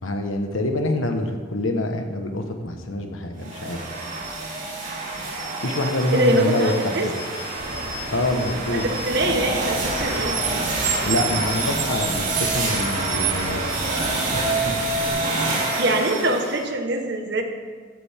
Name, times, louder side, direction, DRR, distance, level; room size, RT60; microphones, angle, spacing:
voice 1, 0.0-3.8 5.6-6.7 8.1-8.9 11.0-13.7 14.3-14.7, left 1 dB, 80° left, 5 dB, 1.4 m, -26 dB
sound 1, 3.4-16.6, right 2 dB, 40° right, 3.3 m, -27 dB
voice 2, 6.1-7.1 8.7-10.4 15.8-17.4, right 1 dB, 55° right, 3 dB, 1.5 m, -23 dB
Car, 7.6-15.1, right 4 dB, 75° right, 2.9 m, -31 dB
14.0 x 12.0 x 3.7 m, 1.5 s
head